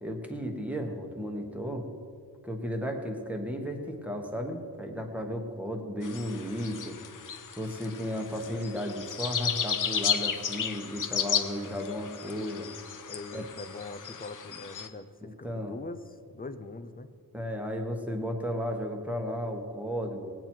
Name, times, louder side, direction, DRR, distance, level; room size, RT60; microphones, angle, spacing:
voice 1, 0.0-1.9 2.4-7.0 7.6-12.7 13.3-13.4 15.2-15.8 17.3-20.3, equal, 5° right, 3 dB, 1.3 m, -34 dB
sound 1, 6.0-14.9, left 7 dB, 55° left, 0.8 m, -34 dB
voice 2, 13.1-17.1, left 3 dB, 25° left, 11 dB, 0.6 m, -42 dB
19.0 x 9.0 x 4.5 m, 2.3 s
wide cardioid pair, 145°, 38 cm